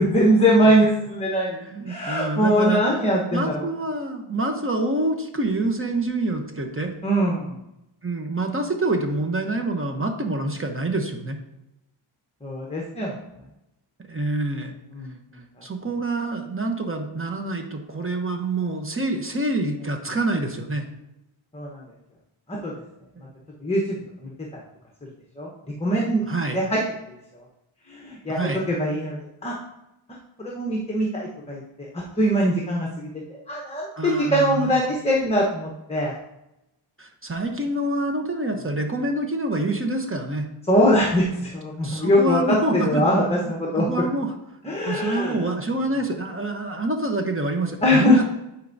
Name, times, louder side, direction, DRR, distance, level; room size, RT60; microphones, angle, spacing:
voice 1, 0.0-1.6 1.9-3.7 7.0-7.6 12.4-13.1 14.9-15.1 21.5-21.8 22.5-22.7 23.6-23.8 24.2-24.3 25.4-25.5 25.8-26.2 26.5-26.8 27.9-29.5 30.4-31.9 32.2-33.1 33.5-36.1 40.7-43.9 44.6-45.5 47.8-48.2, equal, 15° left, -2 dB, 1.0 m, -22 dB
voice 2, 1.6-2.8 3.3-6.9 8.0-11.4 14.1-14.8 15.6-20.9 23.2-23.3 26.3-26.6 28.3-28.6 34.0-34.8 37.0-40.5 41.8-43.0 43.4-44.3 44.8-48.2, right 2 dB, 25° right, 3 dB, 0.9 m, -26 dB
10.5 x 4.6 x 2.6 m, 0.90 s
wide cardioid pair, 100°, 49 cm